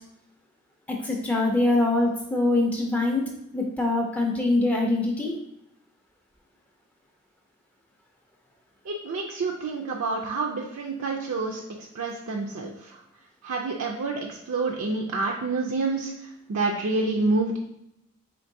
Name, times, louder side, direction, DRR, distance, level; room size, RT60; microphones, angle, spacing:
voice 1, 0.9-3.2 3.5-5.3, left 2 dB, 5° left, 0 dB, 0.4 m, -23 dB
voice 2, 8.9-11.6 11.9-13.0 13.4-17.6, right 3 dB, 70° right, 0 dB, 0.4 m, -28 dB
4.4 x 3.2 x 2.6 m, 0.79 s
head